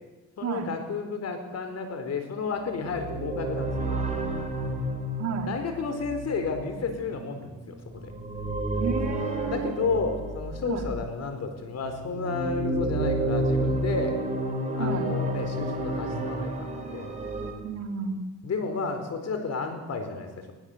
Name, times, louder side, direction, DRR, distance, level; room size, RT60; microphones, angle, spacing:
voice 1, 0.4-4.0 5.5-8.1 9.4-14.2 14.7-17.1 18.4-20.5, left 4 dB, 55° left, 7 dB, 4.5 m, -32 dB
sound 1, 2.7-11.2 11.8-17.5, right 1 dB, 25° right, 5.4 m, -30 dB
voice 2, 5.2-5.5 8.8-9.7 10.7-10.8 14.8-15.1 17.6-18.3, right 5 dB, 60° right, 2 dB, 3.5 m, -31 dB
20.5 x 19.5 x 8.1 m, 1.1 s
cardioid pair, 90°, 30 cm